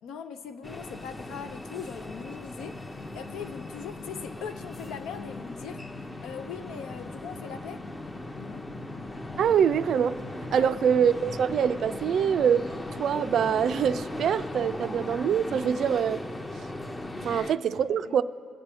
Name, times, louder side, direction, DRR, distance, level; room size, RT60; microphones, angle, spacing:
voice 1, 0.0-7.8 8.3-8.7 10.5-10.8 17.3-17.5 17.9-18.2, left 6 dB, 85° left, 9 dB, 0.7 m, -41 dB
sound 1, 0.6-17.5, left 2 dB, 15° left, 0.6 m, -38 dB
voice 2, 9.4-10.2 10.5-12.7 13.0-16.2 17.2-18.2, right 8 dB, 55° right, 13 dB, 0.3 m, -24 dB
24.0 x 8.8 x 3.5 m, 2.4 s
cardioid pair, 140°, 0 cm